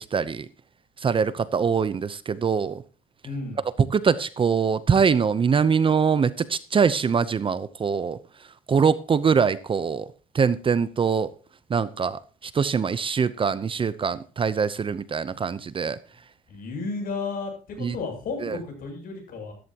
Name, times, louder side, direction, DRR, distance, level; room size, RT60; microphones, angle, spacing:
voice 1, 0.1-0.5 1.0-2.8 3.9-8.2 8.7-10.1 10.3-11.3 11.7-16.0 17.8-18.0 18.4-18.6, right 6 dB, 30° right, 16 dB, 0.8 m, -23 dB
voice 2, 3.2-3.6 16.5-19.5, left 4 dB, 55° left, 2 dB, 7.7 m, -33 dB
15.0 x 13.0 x 2.9 m, 0.37 s
cardioid pair, 110°, 17 cm